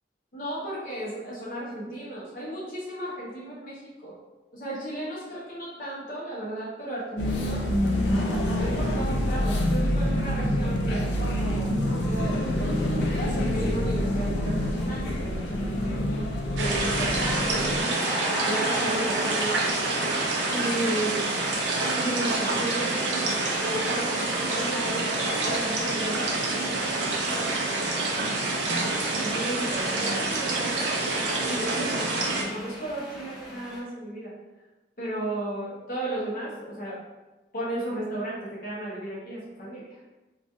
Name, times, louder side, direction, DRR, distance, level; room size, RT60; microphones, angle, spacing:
voice 1, 0.3-4.2 4.5-7.7 8.6-16.1 16.5-18.1 18.4-19.8 20.5-21.5 21.9-28.3 29.1-31.1 31.4-34.4 35.0-37.0 37.5-39.8, right 1 dB, 50° left, -6 dB, 0.8 m, -34 dB
sound 1, 7.2-17.8, left 1 dB, 75° left, 0.4 m, -26 dB
sound 2, 16.6-32.4, right 2 dB, 80° right, 0.5 m, -27 dB
sound 3, 17.3-33.8, equal, 5° right, 0.5 m, -39 dB
3.0 x 2.3 x 2.6 m, 1.1 s
head